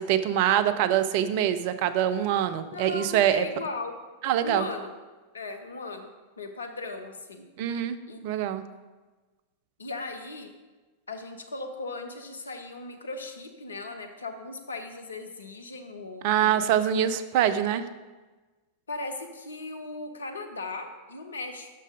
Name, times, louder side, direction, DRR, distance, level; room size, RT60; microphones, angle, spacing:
voice 1, 0.0-3.4 4.2-4.7 7.6-8.0 8.2-8.6 16.2-17.8, right 10 dB, 45° right, 12 dB, 0.4 m, -24 dB
voice 2, 2.6-3.9 4.4-4.9 5.3-6.1 6.4-7.4 8.1-8.2 8.7-8.8 9.8-10.5 11.1-16.8 18.9-21.7, left 2 dB, 70° left, 6 dB, 0.7 m, -37 dB
6.3 x 5.4 x 4.9 m, 1.2 s
figure-of-eight pair, 90°, 0 cm